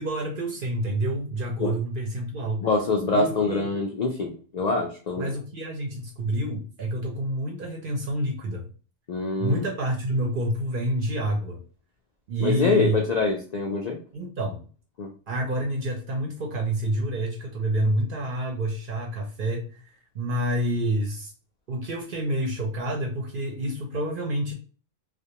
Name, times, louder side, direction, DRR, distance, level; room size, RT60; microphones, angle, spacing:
voice 1, 0.0-2.6 3.1-3.7 5.2-8.7 9.4-11.6 12.3-13.0 14.1-14.7 15.3-19.8 20.1-21.3 21.7-24.5, right 1 dB, 55° right, 1 dB, 0.6 m, -28 dB
voice 2, 2.6-5.4 9.1-9.7 12.4-14.0 15.0-15.1, left 3 dB, 75° left, 0 dB, 0.3 m, -25 dB
2.4 x 2.1 x 2.8 m, 0.38 s
omnidirectional pair, 1.3 m